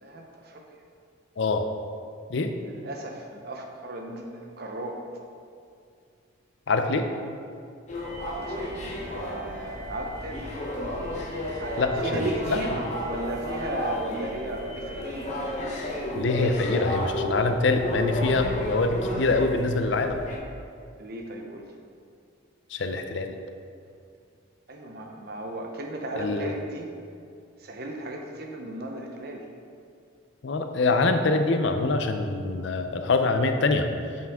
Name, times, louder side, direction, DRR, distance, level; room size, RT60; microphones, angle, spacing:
voice 1, 0.0-0.8 2.6-5.0 8.2-10.4 11.6-15.2 21.0-21.7 24.7-26.9 27.6-29.5, right 1 dB, 50° right, 2 dB, 0.8 m, -35 dB
voice 2, 1.4-1.7 2.3-2.5 6.7-7.1 11.8-12.2 12.5-12.6 16.1-20.2 22.7-23.3 26.2-26.5 30.4-33.9, left 3 dB, 65° left, 7 dB, 0.5 m, -24 dB
sound 1, 7.9-20.4, left 1 dB, 35° left, 0.9 m, -32 dB
7.3 x 5.8 x 3.6 m, 2.4 s
head